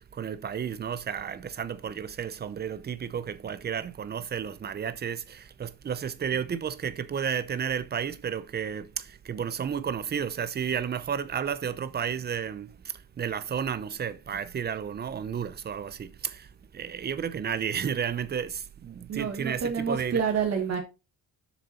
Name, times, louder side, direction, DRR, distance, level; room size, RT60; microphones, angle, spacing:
voice 1, 0.2-12.7 13.2-16.4 16.7-20.2, right 7 dB, 25° right, 0.6 m, -32 dB
voice 2, 19.1-20.8, right 6 dB, 45° right, 1.6 m, -28 dB
7.0 x 6.6 x 4.3 m
cardioid pair, 170°, 36 cm